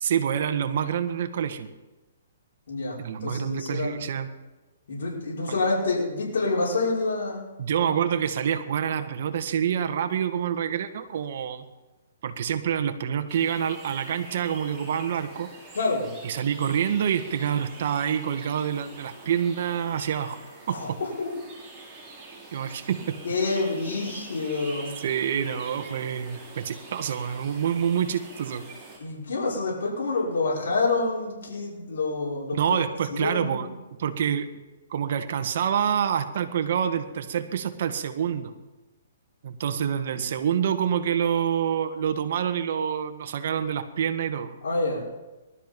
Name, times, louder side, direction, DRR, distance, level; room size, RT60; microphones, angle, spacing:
voice 1, 0.0-1.7 3.0-4.3 5.5-5.6 7.6-11.7 12.2-15.5 16.2-20.4 20.7-21.0 22.5-23.2 25.0-28.7 32.5-33.7 34.0-34.5 34.9-38.5 39.4-44.5, right 8 dB, 55° right, 8 dB, 1.6 m, -27 dB
voice 2, 2.7-4.0 4.9-7.5 15.7-16.1 20.7-21.4 23.2-24.9 29.0-32.8 33.1-33.7 44.6-45.0, left 3 dB, 75° left, -5 dB, 5.4 m, -27 dB
sound 1, 13.3-29.0, right 3 dB, 10° right, 5.3 m, -45 dB
20.0 x 13.0 x 5.3 m, 1.1 s
hypercardioid pair, 155°, 0 cm